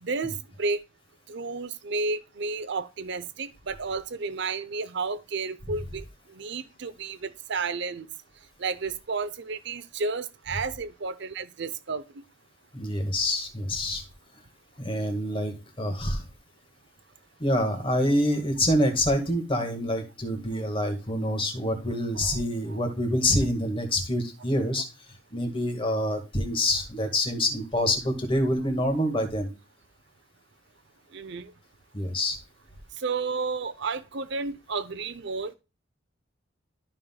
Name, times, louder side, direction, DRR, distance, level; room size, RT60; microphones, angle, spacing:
voice 1, 0.0-0.8 1.3-6.0 6.3-8.1 8.6-12.0 22.1-22.4 22.7-22.8 31.1-31.5 33.0-35.5, right 4 dB, 65° right, 0.7 m, -32 dB
voice 2, 12.7-14.0 14.8-16.2 17.4-24.8 25.3-29.5 31.9-32.4, left 1 dB, 30° left, 1.8 m, -26 dB
13.0 x 5.7 x 2.3 m
head